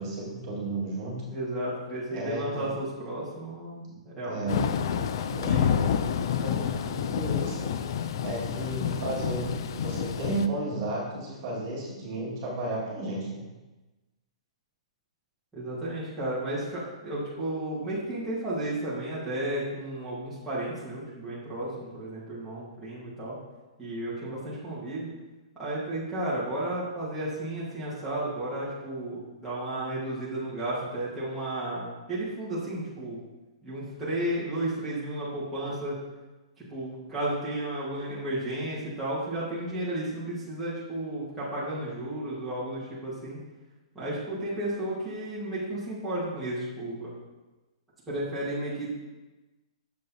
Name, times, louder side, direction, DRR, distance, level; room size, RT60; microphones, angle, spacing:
voice 1, 0.0-1.2 2.1-2.7 4.2-4.6 5.3-5.6 6.3-7.7 8.2-13.5, right 2 dB, 30° right, -5 dB, 1.7 m, -33 dB
voice 2, 1.3-4.6 5.4-6.2 15.5-23.4 23.8-25.1 25.5-33.2 33.6-36.0 36.6-43.4 43.9-47.1 48.1-48.9, right 1 dB, 5° right, -11 dB, 1.4 m, -33 dB
Thunder / Rain, 4.5-10.5, left 8 dB, 45° left, 0.3 m, -28 dB
7.0 x 6.6 x 2.7 m, 1.1 s
hypercardioid pair, 170°, 4 cm